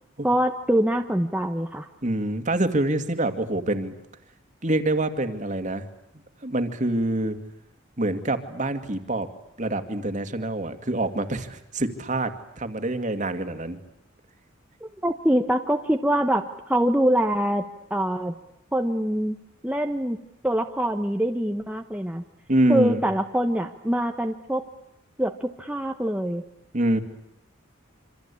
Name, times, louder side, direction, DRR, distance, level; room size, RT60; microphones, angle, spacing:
voice 1, 0.2-1.9 15.0-17.6 17.9-18.3 18.7-19.4 19.6-20.2 20.4-22.3 22.7-24.6 25.2-26.4, right 1 dB, 5° right, 4 dB, 1.1 m, -24 dB
voice 2, 2.0-3.9 4.6-5.8 6.4-7.4 8.0-9.3 9.6-13.8 22.5-23.0 26.7-27.0, right 1 dB, 40° right, 8 dB, 2.3 m, -25 dB
27.0 x 26.0 x 8.5 m, 0.82 s
head